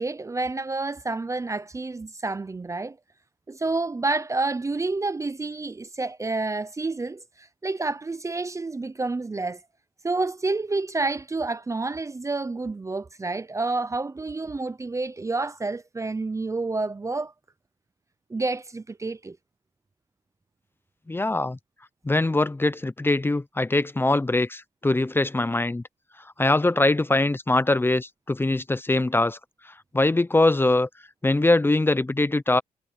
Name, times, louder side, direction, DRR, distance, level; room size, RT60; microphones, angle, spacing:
voice 1, 0.0-3.0 3.5-9.6 10.0-17.3 18.3-19.4, right 3 dB, 20° right, 0.6 m, -29 dB
voice 2, 21.1-21.6 22.0-25.8 26.4-29.4 29.6-30.9 31.2-32.6, left 2 dB, 15° left, 0.7 m, -22 dB
cardioid pair, 110°, 14 cm